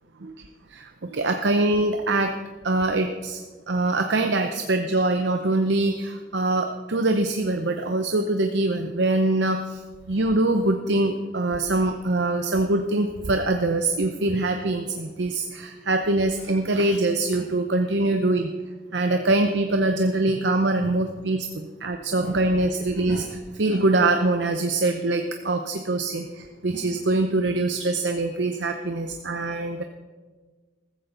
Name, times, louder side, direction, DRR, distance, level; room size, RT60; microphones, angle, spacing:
voice 1, 0.2-2.4 2.6-3.4 3.7-9.8 10.1-18.5 18.9-29.8, right 2 dB, 70° right, 5 dB, 0.8 m, -24 dB
15.0 x 14.0 x 3.9 m, 1.4 s
head